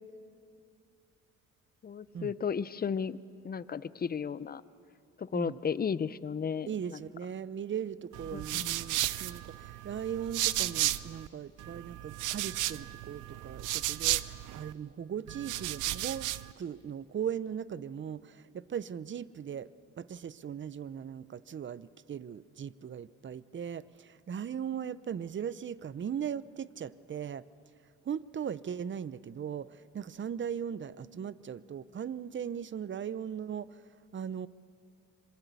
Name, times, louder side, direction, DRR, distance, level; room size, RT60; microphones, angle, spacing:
voice 1, 1.8-3.2 3.4-4.6 5.2-7.0 8.3-8.7, left 6 dB, 30° left, 0.7 m, -34 dB
voice 2, 6.7-16.3 16.6-19.7 20.0-27.4 28.0-33.8 34.1-34.5, right 8 dB, 40° right, 0.7 m, -38 dB
sound 1, 8.1-11.3 11.6-14.7 15.3-16.5, right 15 dB, 85° right, 0.7 m, -34 dB
25.5 x 22.0 x 8.3 m
cardioid pair, 90°, 30 cm